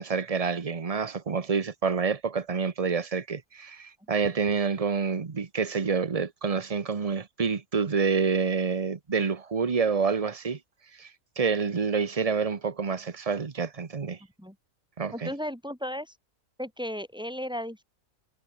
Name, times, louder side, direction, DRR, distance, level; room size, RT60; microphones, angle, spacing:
voice 1, 0.0-10.6 11.0-11.1 11.4-14.2 15.0-15.3, right 5 dB, 30° right, 0.8 m, -28 dB
voice 2, 15.1-16.2 16.6-17.8, equal, 5° right, 4.1 m, -35 dB
omnidirectional pair, 1.6 m